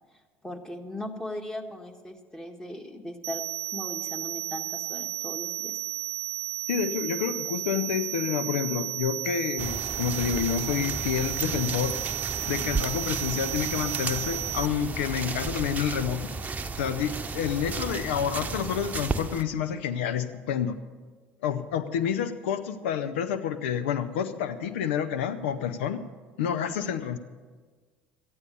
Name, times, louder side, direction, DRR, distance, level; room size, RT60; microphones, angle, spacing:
voice 1, 0.4-3.4 3.7-5.7, left 1 dB, 10° left, 4 dB, 1.8 m, -38 dB
sound 1, 3.2-14.7, right 13 dB, 55° right, 0.5 m, -33 dB
voice 2, 6.7-11.9 12.5-16.3 16.8-20.8 21.4-26.0 26.4-27.2, left 8 dB, 85° left, 11 dB, 0.6 m, -29 dB
sound 2, 9.6-19.4, right 4 dB, 25° right, 0.9 m, -33 dB
13.5 x 9.7 x 6.8 m, 1.4 s
hypercardioid pair, 75°, 6 cm